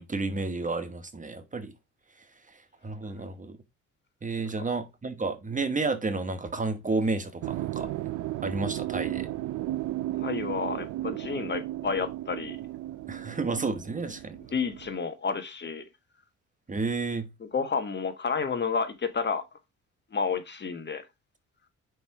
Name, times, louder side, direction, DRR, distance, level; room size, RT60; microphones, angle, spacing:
voice 1, 0.0-1.7 2.2-3.6 4.2-7.9 8.4-9.3 13.1-14.4 16.7-17.3, right 3 dB, 25° right, 1.0 m, -31 dB
sound 1, 7.4-15.0, right 15 dB, 80° right, 0.6 m, -34 dB
voice 2, 10.2-12.6 14.5-15.8 17.4-19.4 20.1-21.1, left 5 dB, 35° left, 1.4 m, -30 dB
5.6 x 4.7 x 4.7 m
cardioid pair, 90°, 30 cm